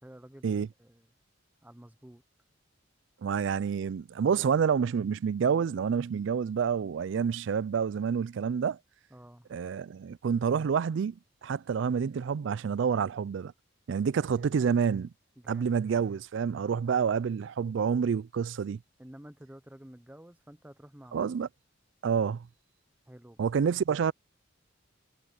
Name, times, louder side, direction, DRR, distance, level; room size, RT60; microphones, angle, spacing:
voice 1, 0.0-1.1 1.6-2.2 9.1-9.5 14.3-14.5 15.4-15.7 19.0-21.3 23.1-23.5, right 1 dB, 10° right, 0.8 m, -51 dB
voice 2, 3.2-8.8 9.5-13.5 13.9-15.1 15.5-18.8 21.1-21.5 22.0-22.5 23.4-24.1, right 6 dB, 65° right, 0.3 m, -28 dB
head